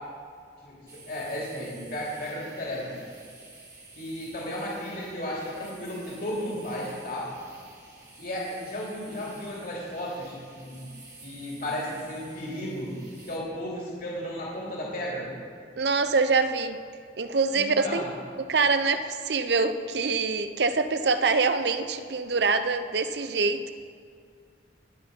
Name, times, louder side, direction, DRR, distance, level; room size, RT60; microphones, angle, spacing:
voice 1, 0.6-2.9 3.9-7.3 8.2-10.9 11.2-13.0 13.3-15.3 17.5-18.1, equal, 50° left, -4 dB, 2.9 m, -34 dB
sound 1, 0.9-13.4, right 3 dB, 20° right, 2.1 m, -51 dB
voice 2, 15.8-16.8 17.2-18.0 18.4-23.7, right 4 dB, 65° right, 10 dB, 0.7 m, -25 dB
20.0 x 7.9 x 5.3 m, 2.2 s
head